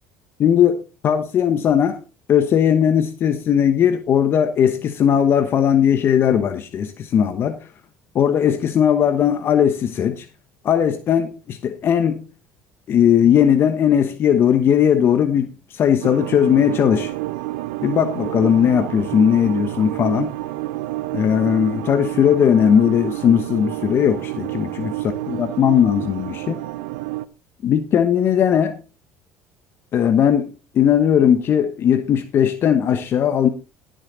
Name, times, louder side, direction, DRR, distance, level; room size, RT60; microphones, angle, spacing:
voice 1, 0.4-2.0 2.3-7.6 8.1-10.3 10.6-12.2 12.9-17.1 17.8-20.3 21.1-24.9 25.3-26.6 27.6-28.7 29.9-30.5 30.7-33.5, left 9 dB, 45° left, 1.0 m, -18 dB
sound 1, 16.0-27.2, right 17 dB, 90° right, 0.7 m, -29 dB
15.0 x 6.4 x 4.0 m
supercardioid pair, 100°, 5 cm